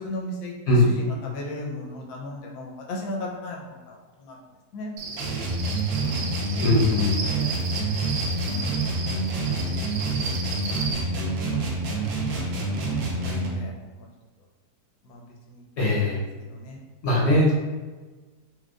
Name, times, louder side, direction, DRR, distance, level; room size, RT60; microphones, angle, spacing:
voice 1, 0.0-4.4 4.7-4.9 6.0-6.3 6.6-7.5 8.4-8.8 9.6-10.2 10.4-10.5 10.8-11.6 11.9-14.1 15.0-16.2 16.5-16.8, left 1 dB, 75° left, -1 dB, 1.1 m, -37 dB
Cricket, 5.0-10.9, right 4 dB, 85° right, 1.2 m, -34 dB
sound 1, 5.2-13.6, right 2 dB, 65° right, 0.8 m, -27 dB
voice 2, 6.6-7.1 15.8-16.2 17.0-17.5, left 1 dB, 60° left, -4 dB, 0.7 m, -20 dB
4.5 x 2.1 x 2.3 m, 1.3 s
omnidirectional pair, 1.8 m